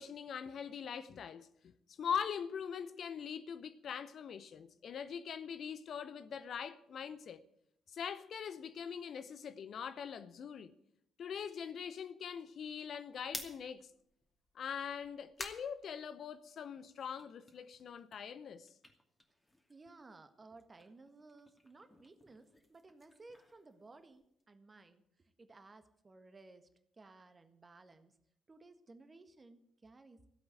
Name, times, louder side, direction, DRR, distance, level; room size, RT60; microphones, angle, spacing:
voice 1, 0.0-1.5 2.0-7.4 7.9-10.7 11.2-13.9 14.5-18.7, left 7 dB, 50° left, 0.8 m, -42 dB
sound 1, 13.1-16.7 17.0-20.0 20.3-24.4, left 1 dB, 15° left, 2.5 m, -52 dB
voice 2, 19.7-26.7 27.0-28.2 28.5-30.2, right 3 dB, 30° right, 1.6 m, -58 dB
15.5 x 8.0 x 9.4 m
figure-of-eight pair, 40°, 0 cm